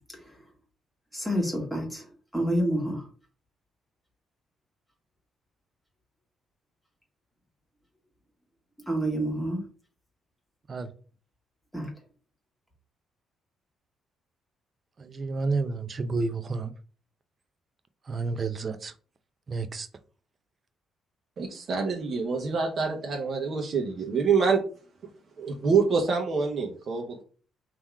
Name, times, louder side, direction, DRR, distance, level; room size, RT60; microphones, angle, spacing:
voice 1, 1.1-3.1 8.9-9.6 11.7-11.9, right 1 dB, 5° right, 1.7 m, -29 dB
voice 2, 15.0-16.7 18.1-18.9 19.5-19.9, right 3 dB, 40° right, 0.6 m, -30 dB
voice 3, 21.4-24.6 25.4-27.2, right 5 dB, 55° right, 1.0 m, -26 dB
3.8 x 3.0 x 4.6 m
cardioid pair, 90°, 0 cm